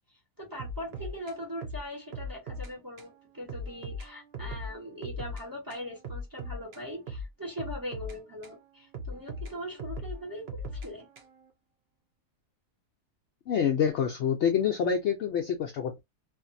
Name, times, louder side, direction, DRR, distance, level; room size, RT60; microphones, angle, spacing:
voice 1, 0.4-11.1, equal, 15° right, 1.0 m, -41 dB
sound 1, 0.6-2.7 3.0-3.1 3.5-5.4 5.7-8.6 8.9-11.5, left 1 dB, 55° right, 0.8 m, -39 dB
voice 2, 13.5-16.0, left 7 dB, 75° left, 0.6 m, -27 dB
2.9 x 2.5 x 2.5 m
omnidirectional pair, 1.7 m